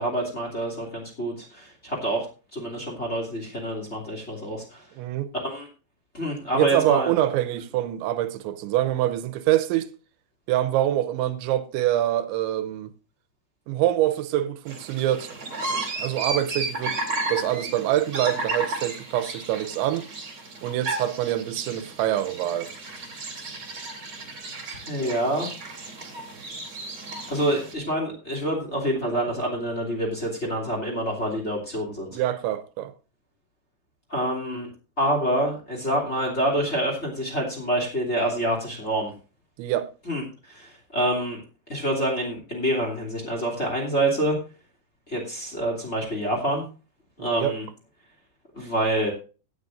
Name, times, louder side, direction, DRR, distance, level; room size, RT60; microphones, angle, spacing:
voice 1, 0.0-2.3 2.5-4.9 5.3-5.7 6.1-7.1 24.9-25.5 27.3-32.2 34.1-34.7 35.0-39.1 40.0-41.4 41.7-44.4 45.1-46.6 47.2-47.6 48.5-49.1, right 1 dB, 20° left, 2.1 m, -27 dB
voice 2, 4.9-5.3 6.5-9.9 10.5-12.9 13.7-15.3 16.0-17.0 17.3-20.1 20.6-22.7 32.1-32.9 39.6-39.9 47.2-47.6, right 13 dB, 85° right, 3.0 m, -25 dB
sound 1, 14.7-27.7, right 2 dB, 30° right, 2.6 m, -34 dB
17.5 x 9.1 x 2.6 m
omnidirectional pair, 5.4 m